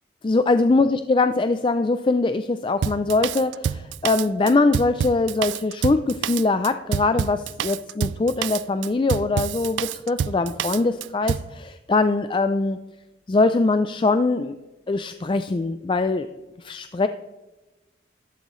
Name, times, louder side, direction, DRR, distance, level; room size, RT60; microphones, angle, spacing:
voice 1, 0.2-12.8 13.3-14.5 14.9-16.3 16.6-17.1, left 3 dB, 25° left, 10 dB, 0.3 m, -22 dB
Drum kit, 2.8-11.5, right 8 dB, 75° right, 0.3 m, -28 dB
13.0 x 11.5 x 3.1 m, 1.1 s
head